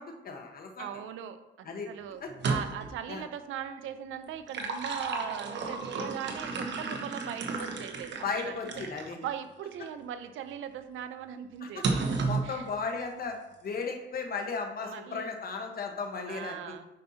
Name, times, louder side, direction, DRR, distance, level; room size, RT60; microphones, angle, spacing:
voice 1, 0.0-0.8 1.6-1.9 2.2-2.3 3.1-3.2 8.2-9.3 11.6-11.8 12.2-13.4 13.6-16.6, left 4 dB, 50° left, 3 dB, 1.3 m, -35 dB
voice 2, 0.8-8.8 9.1-11.9 12.4-12.7 14.8-15.3 16.3-16.8, right 9 dB, 80° right, 10 dB, 0.7 m, -40 dB
sound 1, 2.3-3.0 4.2-9.1 9.7-9.8 11.8-12.5, right 4 dB, 65° right, 1.1 m, -33 dB
9.3 x 5.4 x 2.8 m, 1.0 s
cardioid pair, 90°, 20 cm